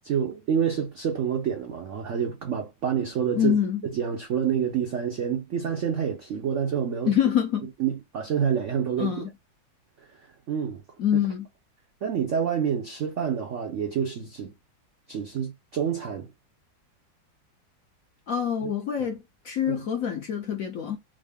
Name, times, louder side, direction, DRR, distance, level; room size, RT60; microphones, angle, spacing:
voice 1, 0.0-3.6 3.9-7.1 7.8-9.3 10.0-10.1 10.5-10.8 12.0-14.5 15.1-16.3 18.6-18.7 19.7-19.8, right 8 dB, 90° right, 0.6 m, -28 dB
voice 2, 3.3-3.8 7.1-7.7 9.0-9.3 11.0-11.5 18.3-21.0, left 9 dB, 65° left, 0.8 m, -25 dB
3.7 x 2.0 x 3.4 m
omnidirectional pair, 2.1 m